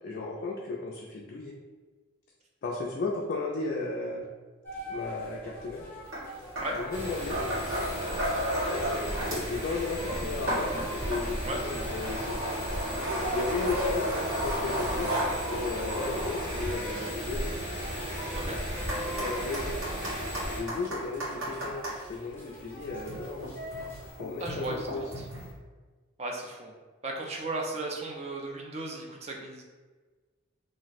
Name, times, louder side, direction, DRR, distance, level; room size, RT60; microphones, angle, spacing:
voice 1, 0.0-1.6 2.6-4.3 4.9-5.8 6.7-7.4 8.7-12.4 13.3-14.1 14.4-15.1 15.5-17.6 19.0-19.8 20.5-23.5 24.2-25.0, left 3 dB, 50° left, -2 dB, 0.3 m, -35 dB
sound 1, 4.6-24.1, equal, 10° left, 0.7 m, -44 dB
sound 2, 6.1-6.2 6.6-9.6 9.9-22.0 22.7-25.5, equal, 80° right, 1.3 m, -34 dB
sound 3, 6.9-20.6, equal, 65° right, 1.2 m, -35 dB
voice 2, 24.4-25.1 26.2-26.7 27.0-29.6, right 2 dB, 30° right, 0 dB, 0.4 m, -35 dB
2.5 x 2.0 x 3.9 m, 1.4 s
head